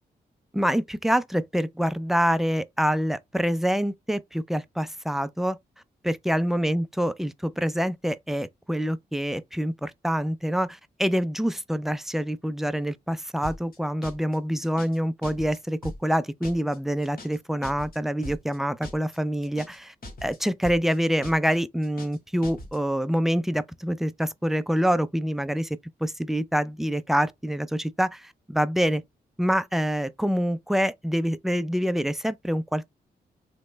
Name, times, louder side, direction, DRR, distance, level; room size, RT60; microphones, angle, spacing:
voice 1, 0.5-5.6 6.0-19.9 20.2-29.0 29.4-32.9, equal, ahead, 0.3 m, -26 dB
sound 1, 13.4-13.8 14.0-14.4 14.6-15.0 15.2-15.6 15.8-16.2 16.4-16.8 17.0-17.4 17.6-18.0 18.2-18.6 18.8-19.2 19.4-19.8 20.0-20.4 20.6-21.0 21.2-21.6 21.8-22.2 22.4-22.8, left 1 dB, 60° left, 1.3 m, -40 dB
3.1 x 2.1 x 3.2 m
cardioid pair, 55°, 18 cm